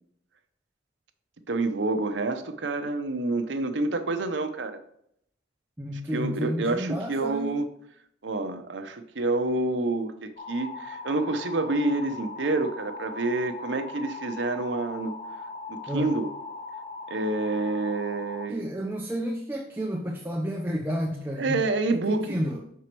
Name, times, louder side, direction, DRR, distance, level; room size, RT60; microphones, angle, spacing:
voice 1, 1.5-4.8 6.1-7.7 8.2-15.1 15.7-16.3 17.1-18.6 21.4-22.4, right 2 dB, 70° right, 8 dB, 0.7 m, -28 dB
voice 2, 5.8-7.6 15.9-16.1 18.5-21.7 22.1-22.7, equal, 10° right, 1 dB, 0.5 m, -31 dB
sound 1, 10.4-18.5, left 3 dB, 35° left, 0.6 m, -39 dB
6.0 x 4.7 x 4.5 m, 0.72 s
head